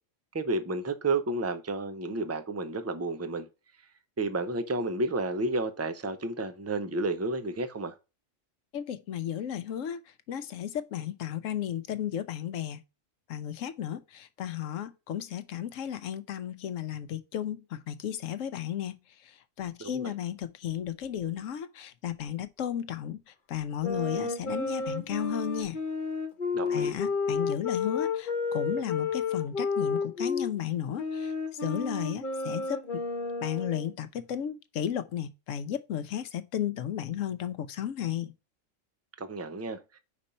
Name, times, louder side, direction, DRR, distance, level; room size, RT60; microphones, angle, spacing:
voice 1, 0.3-3.5 4.2-7.9 19.8-20.1 26.5-26.9 39.2-39.8, right 2 dB, 20° right, 0.4 m, -31 dB
voice 2, 8.7-10.0 10.3-12.8 13.3-19.0 19.6-23.2 23.5-25.8 26.7-31.3 31.6-33.0 33.4-38.3, left 10 dB, 80° left, 1.1 m, -34 dB
sound 1, 23.8-30.5 31.0-33.9, left 4 dB, 40° left, 1.3 m, -31 dB
5.2 x 4.2 x 5.1 m
omnidirectional pair, 1.3 m